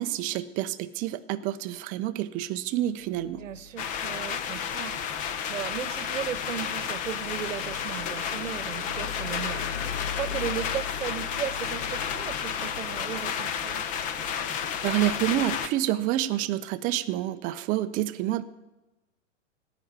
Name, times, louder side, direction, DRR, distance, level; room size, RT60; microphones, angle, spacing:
voice 1, 0.0-3.4 14.8-18.4, right 13 dB, 20° right, 12 dB, 0.5 m, -28 dB
sound 1, 3.0-15.2, left 6 dB, 80° left, 1.3 m, -41 dB
voice 2, 3.3-5.0 5.5-13.9, right 10 dB, 85° right, 16 dB, 1.0 m, -36 dB
sound 2, 3.8-15.7, left 8 dB, 20° left, 0.6 m, -32 dB
17.0 x 6.0 x 9.4 m, 1.0 s
hypercardioid pair, 135°, 37 cm